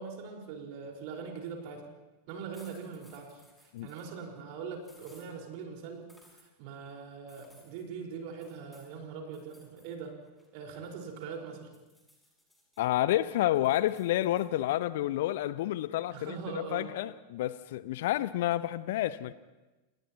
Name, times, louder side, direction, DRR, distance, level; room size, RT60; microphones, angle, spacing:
voice 1, 0.0-1.9 2.3-10.2 10.5-11.7 16.1-16.9, right 5 dB, 45° right, 4.9 m, -42 dB
sound 1, 2.5-4.1 4.8-5.3 6.1-6.5 7.3-7.8 8.4-8.9 9.3-9.9 10.2-11.3 11.7-12.8 13.2-14.5, left 1 dB, 5° left, 6.5 m, -62 dB
voice 2, 12.8-16.4 16.7-19.3, left 14 dB, 55° left, 0.6 m, -29 dB
30.0 x 29.0 x 3.0 m
figure-of-eight pair, 90°, 0 cm